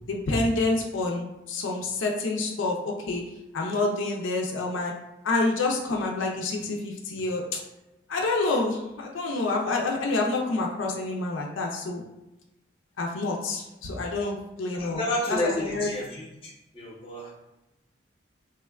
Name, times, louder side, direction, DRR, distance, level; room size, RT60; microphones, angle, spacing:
voice 1, 0.1-3.2 3.5-4.9 5.2-7.6 8.1-12.0 13.0-15.0 15.3-15.9, left 2 dB, 90° left, 0 dB, 0.4 m, -28 dB
voice 2, 14.7-16.3 16.7-17.3, left 1 dB, 30° left, -4 dB, 0.7 m, -30 dB
3.4 x 2.1 x 2.3 m, 0.95 s
head